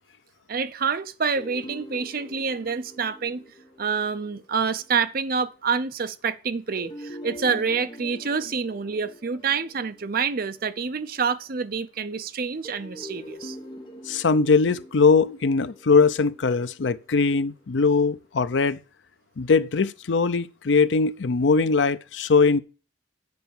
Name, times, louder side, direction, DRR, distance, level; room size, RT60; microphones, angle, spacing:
voice 1, 0.5-3.4 3.8-13.6, right 5 dB, 50° right, 0.6 m, -27 dB
sound 1, 1.3-5.2 6.8-11.2 12.6-17.8, equal, 25° left, 1.3 m, -44 dB
voice 2, 14.1-18.8 19.4-22.6, left 4 dB, 70° left, 0.6 m, -21 dB
7.9 x 5.6 x 7.1 m
head